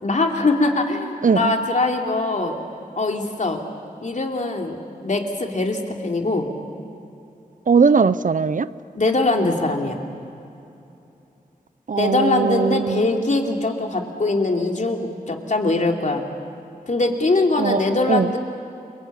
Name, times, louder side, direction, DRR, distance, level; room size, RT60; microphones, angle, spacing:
voice 1, 0.0-2.6 3.0-3.6 4.0-6.5 8.9-10.0 12.0-16.2 16.9-18.4, left 2 dB, 55° left, 2 dB, 3.1 m, -22 dB
voice 2, 7.7-8.7 11.9-13.0 17.6-17.8 18.1-18.3, right 5 dB, 60° right, 15 dB, 0.7 m, -19 dB
29.5 x 23.5 x 8.7 m, 2.8 s
wide cardioid pair, 65°, 15 cm